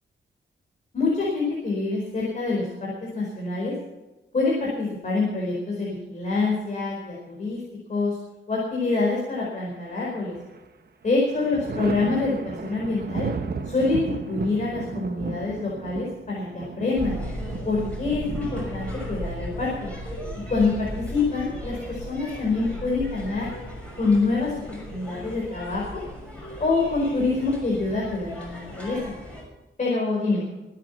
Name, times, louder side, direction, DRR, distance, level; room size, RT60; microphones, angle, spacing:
voice 1, 0.9-3.7 4.3-7.6 7.9-8.2 8.5-10.3 11.0-13.3 13.6-17.2 17.6-19.9 20.5-23.5 24.0-26.0 26.6-29.1 29.8-30.5, left 3 dB, 35° left, -4 dB, 4.8 m, -26 dB
Thunder, 9.9-10.7 11.0-20.6 22.1-22.9, right 5 dB, 50° right, 1.3 m, -35 dB
sound 1, 16.9-29.4, equal, 5° left, 6.0 m, -36 dB
24.0 x 8.5 x 5.7 m, 1.0 s
wide cardioid pair, 170°, 21 cm